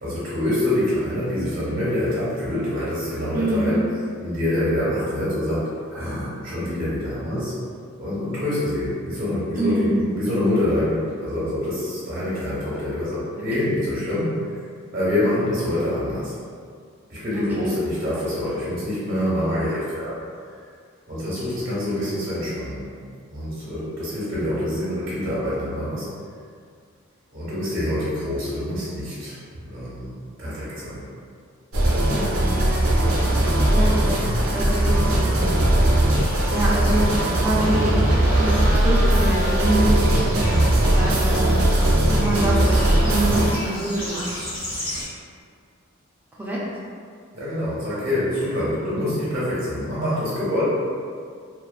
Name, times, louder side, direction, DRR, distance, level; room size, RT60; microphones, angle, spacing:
voice 1, 0.0-3.9 4.2-7.5 8.0-14.5 14.9-16.3 17.1-20.2 21.1-22.9 23.3-26.1 27.3-31.1 47.3-50.6, left 1 dB, 45° right, -10 dB, 0.7 m, -26 dB
voice 2, 3.3-3.8 9.6-10.0 13.6-13.7 17.3-17.7 32.0-32.4 33.3-34.2 34.5-35.5 36.2-38.0 38.4-41.6 42.1-44.4 46.3-46.7, right 1 dB, 10° right, -6 dB, 0.4 m, -26 dB
sound 1, 31.7-43.5, right 1 dB, 85° right, 0.5 m, -19 dB
sound 2, 36.1-45.1, left 1 dB, 45° left, 1.3 m, -36 dB
2.3 x 2.2 x 2.3 m, 2.1 s
head